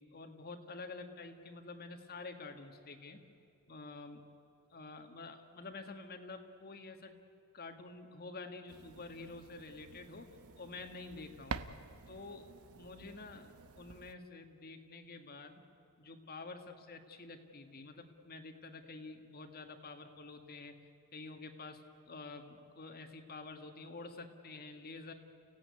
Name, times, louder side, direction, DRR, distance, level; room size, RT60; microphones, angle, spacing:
voice 1, 0.0-3.2 3.7-4.3 4.7-7.2 7.5-11.6 12.1-15.6 16.0-20.7 21.1-25.1, left 3 dB, 45° left, 6 dB, 1.7 m, -49 dB
sound 1, 8.7-14.1, right 4 dB, 80° right, 0.9 m, -48 dB
30.0 x 16.5 x 9.6 m, 2.7 s
head